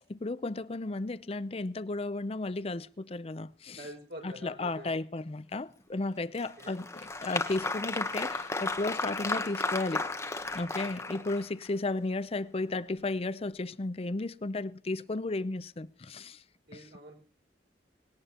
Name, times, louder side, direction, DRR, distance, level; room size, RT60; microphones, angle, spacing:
voice 1, 0.1-3.9 4.2-10.0 10.5-16.4 16.7-16.9, left 2 dB, 35° left, 0.6 m, -34 dB
voice 2, 3.8-4.9 6.6-6.7 11.0-11.1 16.7-17.2, right 1 dB, 65° right, 5.8 m, -46 dB
Applause, 6.4-11.7, left 3 dB, 15° left, 1.1 m, -34 dB
19.5 x 18.0 x 2.9 m
head